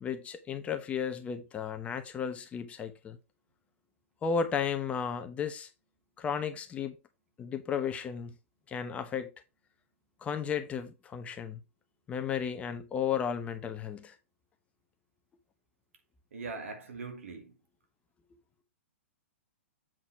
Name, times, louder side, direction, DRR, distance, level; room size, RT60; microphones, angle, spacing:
voice 1, 0.0-3.2 4.2-5.7 6.2-7.0 7.4-8.3 8.7-9.3 10.2-11.6 12.1-14.2, left 7 dB, 20° left, 0.9 m, -34 dB
voice 2, 16.3-17.5, right 4 dB, 85° right, 2.4 m, -41 dB
7.6 x 4.2 x 4.6 m
hypercardioid pair, 135°, 7 cm